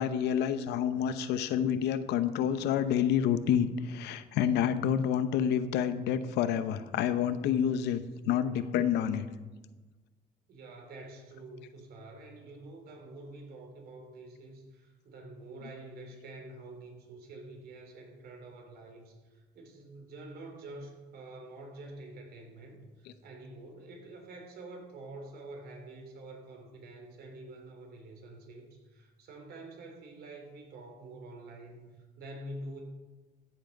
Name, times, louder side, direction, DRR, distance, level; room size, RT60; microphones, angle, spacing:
voice 1, 0.0-9.3, left 9 dB, 85° left, 12 dB, 0.8 m, -28 dB
voice 2, 10.5-32.8, right 2 dB, 70° right, 2 dB, 3.3 m, -47 dB
14.0 x 7.4 x 5.3 m, 1.2 s
cardioid pair, 110°, 17 cm